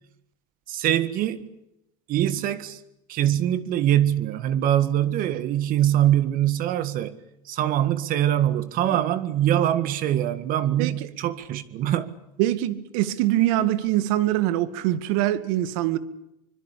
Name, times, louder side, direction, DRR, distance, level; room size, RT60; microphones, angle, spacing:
voice 1, 0.7-1.5 2.1-2.8 3.1-7.1 7.4-12.1, right 11 dB, 50° right, 1.8 m, -23 dB
voice 2, 12.4-16.0, right 14 dB, 75° right, 2.1 m, -23 dB
25.0 x 22.0 x 8.6 m
supercardioid pair, 115°, 18 cm